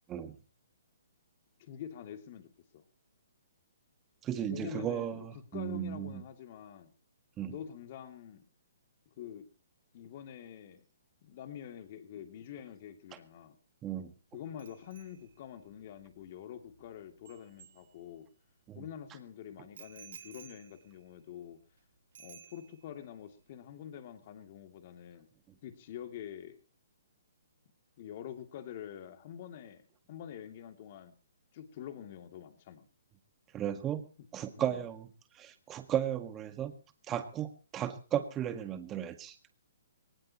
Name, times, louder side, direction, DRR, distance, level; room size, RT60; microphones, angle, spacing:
voice 1, 1.6-2.8 4.5-6.9 7.5-8.4 9.2-9.5 9.9-10.8 11.2-13.6 14.3-18.3 18.7-21.6 22.2-25.3 25.6-26.6 28.0-29.8 30.1-31.1 31.5-32.9 34.6-34.8, left 9 dB, 40° left, 6 dB, 2.8 m, -46 dB
voice 2, 4.2-6.2 7.4-7.5 13.8-14.1 18.7-18.8 33.5-34.0 34.3-35.1 35.3-36.7 37.1-39.4, right 10 dB, 15° right, 8 dB, 1.7 m, -35 dB
Bicycle bell, 14.6-18.4 19.8-21.8 22.1-23.0 23.3-23.6, right 7 dB, 65° right, 3.9 m, -56 dB
21.5 x 19.0 x 3.1 m, 0.34 s
hypercardioid pair, 155°, 0 cm